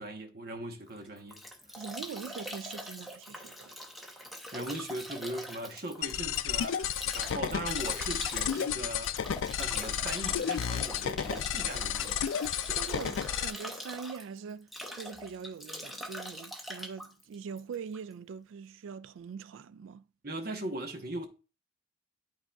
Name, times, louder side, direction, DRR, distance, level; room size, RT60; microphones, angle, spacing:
voice 1, 0.0-1.4 4.5-12.2 20.2-21.3, right 1 dB, 50° right, 1.0 m, -39 dB
Bathtub (filling or washing) / Drip / Trickle dribble, 0.9-18.1, equal, ahead, 0.7 m, -43 dB
voice 2, 1.8-3.8 12.7-20.0, right 6 dB, 85° right, 0.3 m, -43 dB
sound 1, 6.0-13.5, left 9 dB, 85° left, 0.4 m, -32 dB
11.5 x 3.9 x 2.3 m
head